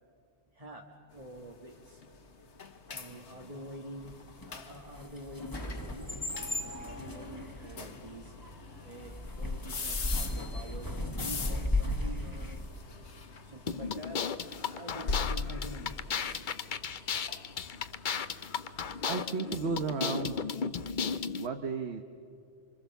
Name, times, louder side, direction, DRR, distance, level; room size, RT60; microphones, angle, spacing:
voice 1, 0.5-2.0 2.9-4.2 4.5-8.3 8.8-12.6 13.4-14.2 14.5-16.5, right 1 dB, 30° right, 0 dB, 1.6 m, -47 dB
sound 1, 1.1-19.3, left 4 dB, 70° left, 1.7 m, -43 dB
sound 2, 4.1-12.7, left 2 dB, 20° left, 1.3 m, -36 dB
sound 3, 13.7-21.5, left 6 dB, 50° left, 0.8 m, -35 dB
voice 2, 19.1-20.5 21.4-22.0, right 5 dB, 65° right, 6 dB, 1.3 m, -34 dB
26.5 x 25.0 x 7.1 m, 2.5 s
omnidirectional pair, 1.2 m